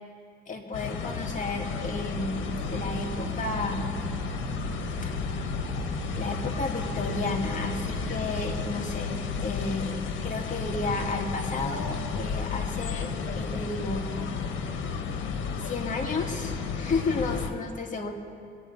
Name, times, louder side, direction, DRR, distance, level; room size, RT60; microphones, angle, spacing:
voice 1, 0.5-4.0 5.0-5.2 6.1-14.1 15.6-18.1, left 3 dB, 40° left, 1 dB, 2.1 m, -32 dB
sound 1, 0.7-17.5, left 5 dB, 80° left, 1.3 m, -32 dB
sound 2, 2.1-8.7, right 5 dB, 55° right, 4.3 m, -40 dB
22.0 x 9.3 x 5.4 m, 2.3 s
cardioid pair, 90°, 20 cm